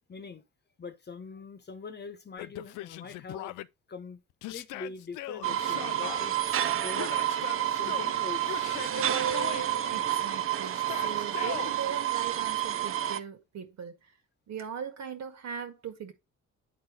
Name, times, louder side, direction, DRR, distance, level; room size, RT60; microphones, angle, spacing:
voice 1, 0.1-0.4 0.8-3.6 3.9-7.1 7.7-8.7 9.8-10.1, left 4 dB, 35° left, 1.0 m, -43 dB
Yell, 2.4-3.7 4.4-6.2 6.9-8.1 8.4-9.7 10.7-11.7, left 16 dB, 90° left, 0.5 m, -40 dB
sound 1, 5.4-13.2, right 11 dB, 45° right, 0.6 m, -29 dB
voice 2, 9.9-14.1 14.5-16.1, right 7 dB, 65° right, 1.8 m, -40 dB
9.2 x 4.1 x 3.8 m
cardioid pair, 90°, 30 cm